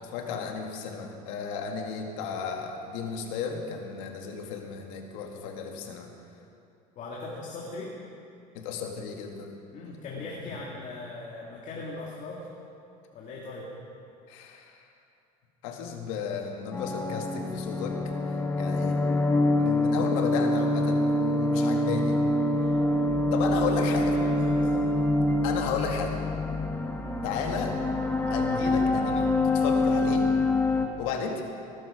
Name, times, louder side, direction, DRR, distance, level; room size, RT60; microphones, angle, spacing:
voice 1, 0.0-6.1 8.5-9.6 10.2-10.3 14.3-14.8 15.6-18.0 18.3-19.0 19.6-22.2 22.6-22.7 23.3-24.2 25.4-26.2 27.2-27.8 28.3-30.3 31.0-31.4, left 6 dB, 85° left, 3 dB, 1.9 m, -34 dB
voice 2, 7.0-8.0 9.7-12.5 13.1-13.7 24.0-24.9, left 2 dB, 50° left, -3 dB, 2.3 m, -39 dB
sound 1, 16.7-30.9, left 2 dB, 10° left, 1.2 m, -25 dB
19.0 x 11.5 x 5.0 m, 2.7 s
supercardioid pair, 115°, 16 cm